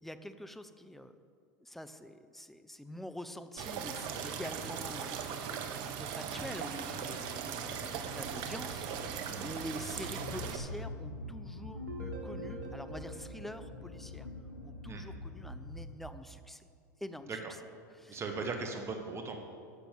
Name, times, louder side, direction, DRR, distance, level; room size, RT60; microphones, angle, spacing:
voice 1, 0.0-1.2 1.6-14.3 14.6-16.6 17.0-17.4 17.9-18.5, left 1 dB, ahead, 10 dB, 0.7 m, -46 dB
sound 1, 3.6-10.6, right 7 dB, 55° right, 1.2 m, -39 dB
sound 2, 9.8-16.3, left 2 dB, 90° left, 1.1 m, -44 dB
sound 3, 11.7-14.7, right 2 dB, 80° right, 2.2 m, -46 dB
voice 2, 18.1-19.5, right 4 dB, 25° right, 3 dB, 1.5 m, -38 dB
11.5 x 6.9 x 7.6 m, 2.2 s
hypercardioid pair, 95°, 10 cm